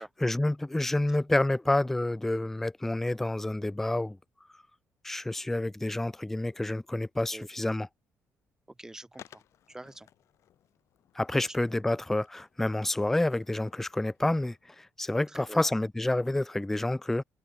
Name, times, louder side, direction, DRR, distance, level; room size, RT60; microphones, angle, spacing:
voice 1, 0.0-4.2 5.0-7.9 11.2-17.2, left 1 dB, 5° left, 0.3 m, -29 dB
voice 2, 8.7-9.4 9.7-10.1 11.4-11.6 11.8-12.0 15.3-15.7, right 2 dB, 10° right, 2.9 m, -45 dB
Skateboard, 9.1-14.6, left 11 dB, 70° left, 6.0 m, -58 dB
open air
cardioid pair, 135°, 5 cm